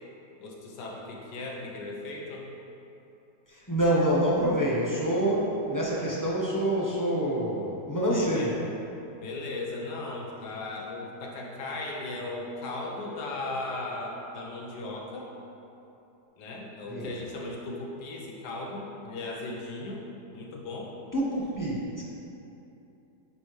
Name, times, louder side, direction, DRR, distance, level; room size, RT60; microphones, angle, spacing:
voice 1, 0.4-2.5 8.1-8.6 9.2-15.3 16.4-20.0 20.3-20.9, left 2 dB, 85° left, -1 dB, 1.4 m, -37 dB
voice 2, 3.5-8.5 16.9-17.1 21.1-22.0, right 1 dB, 20° left, -6 dB, 0.5 m, -26 dB
9.2 x 4.2 x 3.1 m, 2.9 s
omnidirectional pair, 1.8 m